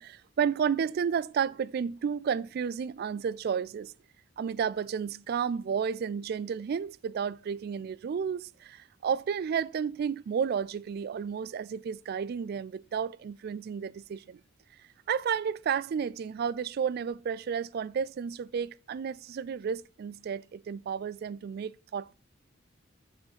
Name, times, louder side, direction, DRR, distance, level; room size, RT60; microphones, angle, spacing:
voice 1, 0.0-3.9 4.4-14.4 15.1-22.2, right 7 dB, 55° right, 0.3 m, -32 dB
7.1 x 6.5 x 4.1 m
head